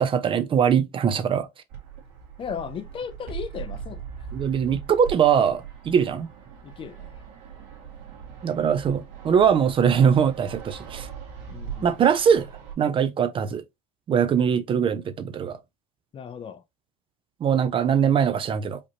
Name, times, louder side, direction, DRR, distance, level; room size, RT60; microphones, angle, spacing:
voice 1, 0.0-1.5 4.3-6.3 8.4-11.1 11.8-12.5 12.8-13.6 14.1-15.6 17.4-18.8, right 7 dB, 30° right, 0.4 m, -22 dB
Fixed-wing aircraft airplane, 1.7-12.7, right 7 dB, 70° right, 1.7 m, -40 dB
voice 2, 2.4-4.0 6.6-7.2 11.5-12.0 16.1-16.6, left 7 dB, 30° left, 0.5 m, -36 dB
5.0 x 2.9 x 2.8 m
cardioid pair, 135°, 19 cm